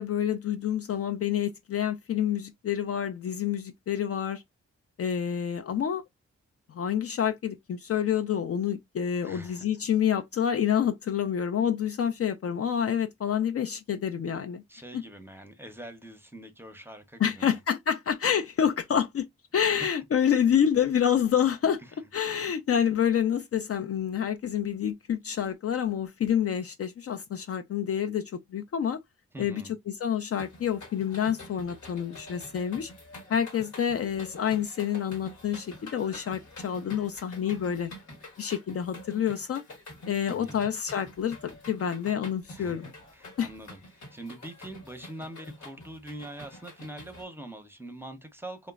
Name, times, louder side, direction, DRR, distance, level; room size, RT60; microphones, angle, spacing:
voice 1, 0.0-4.4 5.0-6.0 6.7-14.6 17.2-19.3 19.5-21.8 22.1-29.0 29.4-32.9 33.3-37.9 38.4-39.6 40.1-42.9 43.4-43.5, left 8 dB, 50° left, 0.4 m, -28 dB
voice 2, 9.2-9.7 14.7-17.6 21.8-21.9 29.3-29.7 40.3-40.7 42.5-42.8 43.1-48.7, right 1 dB, 10° right, 0.7 m, -43 dB
sound 1, 30.4-47.2, left 1 dB, 80° left, 1.1 m, -47 dB
2.9 x 2.1 x 2.3 m
cardioid pair, 45°, 30 cm